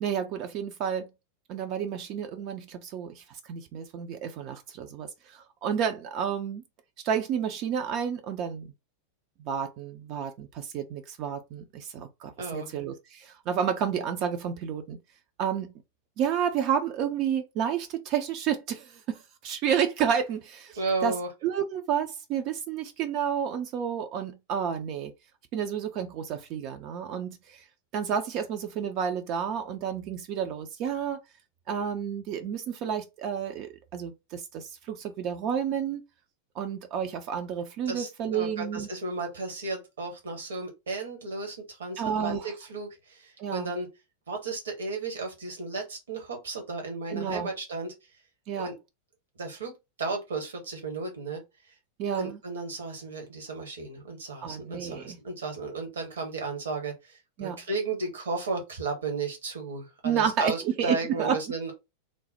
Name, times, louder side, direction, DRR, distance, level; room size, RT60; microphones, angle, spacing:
voice 1, 0.0-1.1 1.5-6.6 7.0-8.7 9.4-15.0 15.4-15.7 16.2-21.1 21.4-25.1 25.5-27.7 27.9-31.2 31.7-36.0 36.6-38.9 42.0-42.5 43.4-43.7 47.1-47.5 48.5-48.7 52.0-52.4 54.4-55.2 57.4-57.6 60.0-61.4, right 8 dB, 40° right, 0.4 m, -30 dB
voice 2, 12.4-12.7 20.8-21.3 37.9-43.9 44.3-47.9 48.6-48.7 49.4-51.4 52.1-61.7, right 3 dB, 65° right, 1.0 m, -34 dB
3.1 x 2.0 x 4.0 m
figure-of-eight pair, 90°, 0 cm